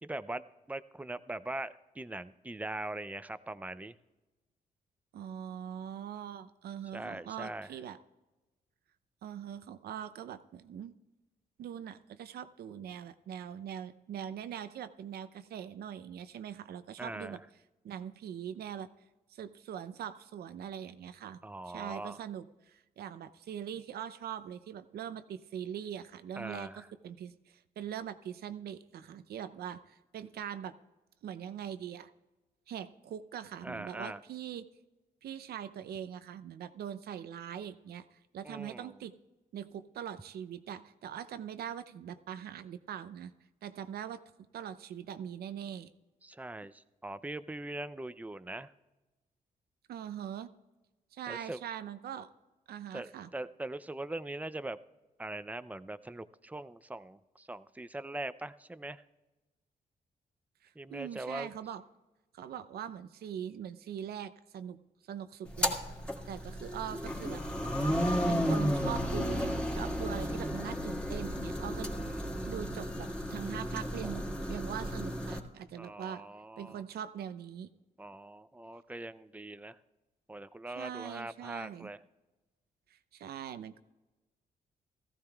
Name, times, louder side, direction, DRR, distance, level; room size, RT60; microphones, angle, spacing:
voice 1, 0.0-4.0 6.9-7.7 17.0-17.4 21.4-22.2 26.4-26.9 33.6-34.2 38.4-39.0 46.2-48.7 51.3-51.6 52.9-54.8 55.2-59.0 60.8-61.5 71.9-72.7 75.8-76.8 78.0-79.8 80.3-82.0, right 2 dB, 10° right, 14 dB, 0.5 m, -41 dB
voice 2, 5.1-8.0 9.2-10.9 11.6-17.4 17.8-18.9 19.3-21.4 21.7-30.8 31.2-32.1 32.7-34.6 35.2-39.1 39.5-43.3 43.6-44.2 44.5-45.9 49.9-50.5 51.1-52.3 52.7-53.3 60.6-61.8 62.3-65.8 66.3-67.4 68.3-71.9 72.4-76.3 76.6-77.7 80.7-81.9 82.9-83.8, right 9 dB, 80° right, 12 dB, 0.6 m, -42 dB
sound 1, 65.5-75.4, equal, 5° left, 2.2 m, -33 dB
17.5 x 15.0 x 2.3 m, 1.1 s
cardioid pair, 85°, 16 cm